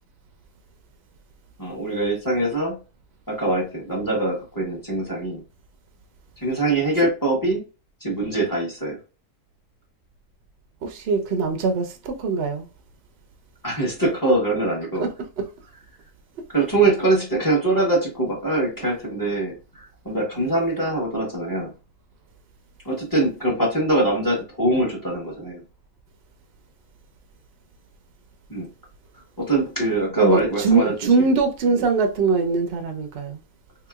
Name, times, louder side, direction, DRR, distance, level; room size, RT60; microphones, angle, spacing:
voice 1, 1.6-2.7 3.3-5.4 6.4-7.6 8.0-9.0 13.6-15.1 16.5-21.7 22.8-25.6 28.5-28.7 29.4-31.3 31.7-31.8, right 2 dB, 15° left, 1.0 m, -23 dB
voice 2, 10.8-12.7 15.0-15.5 20.4-20.5 30.2-33.4, right 4 dB, 60° right, 0.7 m, -22 dB
3.5 x 2.9 x 2.3 m
omnidirectional pair, 1.4 m